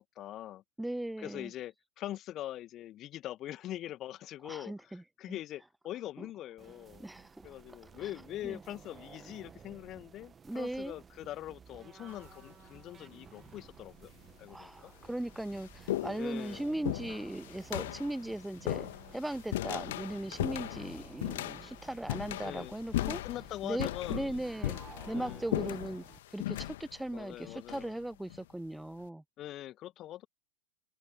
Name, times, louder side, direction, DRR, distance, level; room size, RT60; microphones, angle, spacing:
voice 1, 0.0-0.6 1.2-4.7 5.2-7.0 7.4-14.1 14.4-14.9 16.2-16.6 19.6-19.7 22.4-22.7 23.0-24.3 25.1-25.5 27.1-27.9 29.4-30.3, left 13 dB, 35° left, 1.7 m, -43 dB
voice 2, 0.8-1.5 4.4-5.4 6.2-6.3 7.0-7.5 8.4-8.6 10.4-10.9 14.5-23.2 23.6-24.8 25.1-26.0 26.3-29.2, right 1 dB, 5° right, 0.4 m, -38 dB
sound 1, 6.6-26.2, right 7 dB, 20° right, 1.9 m, -55 dB
sound 2, 12.1-12.5 13.5-13.6 14.4-14.5 14.9-28.4, left 15 dB, 55° left, 1.8 m, -38 dB
open air
figure-of-eight pair, 90°, 0 cm